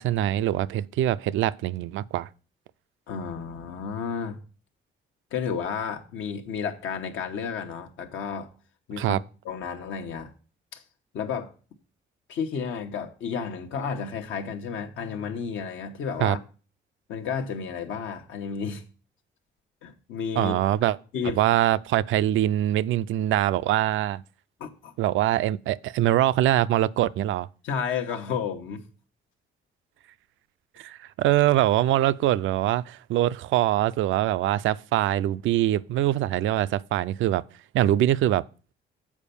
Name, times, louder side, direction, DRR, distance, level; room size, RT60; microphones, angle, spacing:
voice 1, 0.0-2.3 9.0-9.2 16.2-16.4 20.4-21.0 21.4-24.2 25.0-27.5 30.8-37.4 37.7-38.4, right 13 dB, 80° right, 0.4 m, -23 dB
voice 2, 3.1-4.4 5.3-8.5 8.9-10.3 10.7-10.8 11.1-11.5 12.3-16.4 17.1-18.8 19.8-20.5 21.1-21.4 24.6-24.9 27.6-28.8, left 6 dB, 80° left, 1.1 m, -32 dB
7.4 x 4.5 x 6.8 m
cardioid pair, 90°, 20 cm